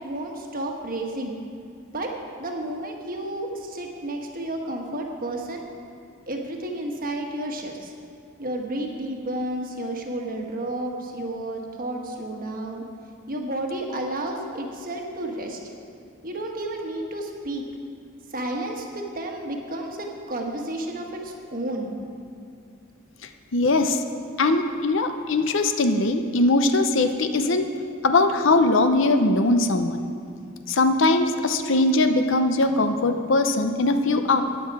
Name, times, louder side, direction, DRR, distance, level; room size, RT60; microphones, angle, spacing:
voice 1, 0.0-1.3 1.9-2.1 2.4-5.6 6.3-7.9 8.4-12.8 13.3-15.6 16.2-17.6 18.3-21.9, right 1 dB, 45° right, 2 dB, 1.3 m, -31 dB
voice 2, 23.5-24.0 24.4-27.7 28.0-30.0 30.7-34.4, left 2 dB, 65° left, 7 dB, 0.7 m, -21 dB
13.0 x 9.5 x 4.8 m, 2.3 s
head